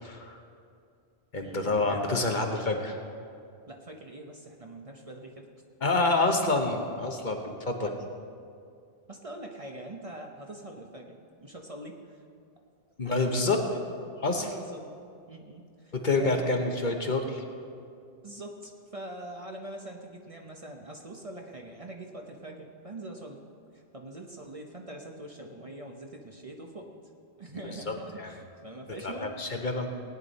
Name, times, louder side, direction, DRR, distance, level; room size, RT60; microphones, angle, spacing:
voice 1, 0.0-0.4 1.3-3.0 5.8-7.9 13.0-13.6 14.2-14.5 15.9-17.4 27.6-28.3 29.0-29.9, left 3 dB, 50° left, 3 dB, 1.1 m, -28 dB
voice 2, 1.4-2.4 3.7-5.5 6.0-6.1 7.4-7.7 9.1-12.2 13.0-15.0 15.3-16.6 18.2-23.4 23.7-26.9 27.4-29.4, right 1 dB, 35° right, 2 dB, 0.9 m, -43 dB
18.0 x 9.5 x 4.1 m, 2.4 s
omnidirectional pair, 1.1 m